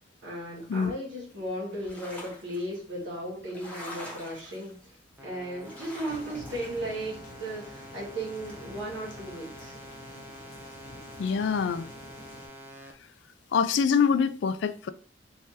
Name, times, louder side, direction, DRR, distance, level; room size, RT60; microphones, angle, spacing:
voice 1, 0.2-9.8, right 1 dB, 75° right, 1.9 m, -36 dB
sound 1, 1.3-11.7, equal, 10° left, 1.0 m, -49 dB
sound 2, 5.2-12.9, equal, 10° right, 0.6 m, -47 dB
sound 3, 6.1-12.5, left 1 dB, 45° left, 0.9 m, -48 dB
voice 2, 11.2-11.9 13.5-14.9, left 6 dB, 70° left, 0.3 m, -25 dB
3.5 x 3.2 x 2.8 m
head